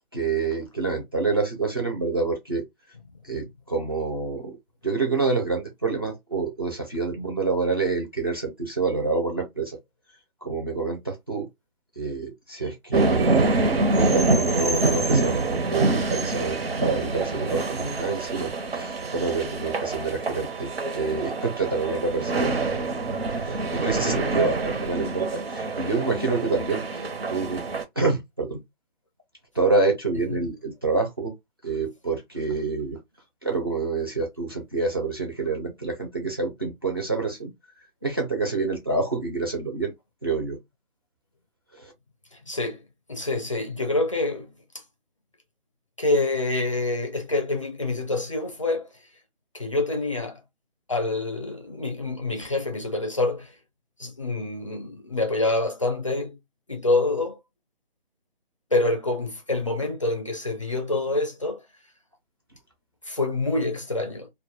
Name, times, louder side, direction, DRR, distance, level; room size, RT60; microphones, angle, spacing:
voice 1, 0.1-2.7 3.2-4.6 4.8-9.8 10.4-11.5 12.0-13.4 14.0-22.5 23.4-27.7 28.0-28.6 29.5-31.3 31.6-33.0 33.4-37.5 38.0-39.9 40.2-40.6 41.7-41.9, right 3 dB, 25° right, 0.4 m, -27 dB
sound 1, 12.9-27.8, right 3 dB, 85° right, 0.8 m, -25 dB
voice 2, 42.3-42.8 43.1-44.5 46.0-48.9 49.5-50.4 50.9-53.5 54.0-56.4 56.7-57.4 58.7-61.6 63.0-64.3, left 2 dB, 35° left, 0.4 m, -26 dB
2.2 x 2.1 x 2.9 m
figure-of-eight pair, 165°, 30 cm